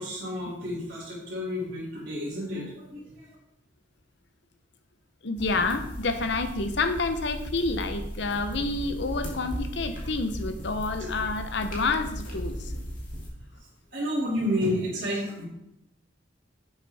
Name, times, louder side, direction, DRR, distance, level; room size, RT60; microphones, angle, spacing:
voice 1, 0.0-3.3 11.0-11.1 13.9-15.4, equal, 50° right, -10 dB, 2.6 m, -31 dB
voice 2, 5.2-12.7, left 3 dB, 65° left, 9 dB, 0.8 m, -29 dB
sound 1, 5.4-13.3, equal, 45° left, 2.5 m, -36 dB
10.5 x 7.4 x 3.5 m, 0.82 s
head